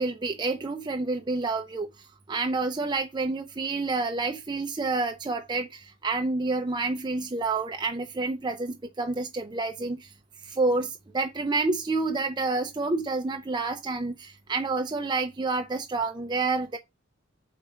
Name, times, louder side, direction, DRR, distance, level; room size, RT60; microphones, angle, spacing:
voice 1, 0.0-1.9 2.3-10.1 10.5-16.8, right 3 dB, 20° right, 0.5 m, -28 dB
5.0 x 4.2 x 6.0 m
head